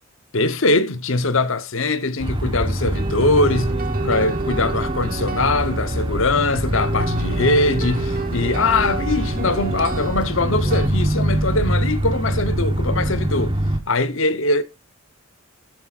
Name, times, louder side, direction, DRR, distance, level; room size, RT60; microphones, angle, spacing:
voice 1, 0.3-3.7 4.0-13.5 13.9-14.6, left 2 dB, 65° left, 1.0 m, -21 dB
sound 1, 2.2-13.8, right 1 dB, 20° right, 1.2 m, -24 dB
sound 2, 2.8-10.9, right 4 dB, 40° right, 1.0 m, -31 dB
14.0 x 10.0 x 2.5 m
head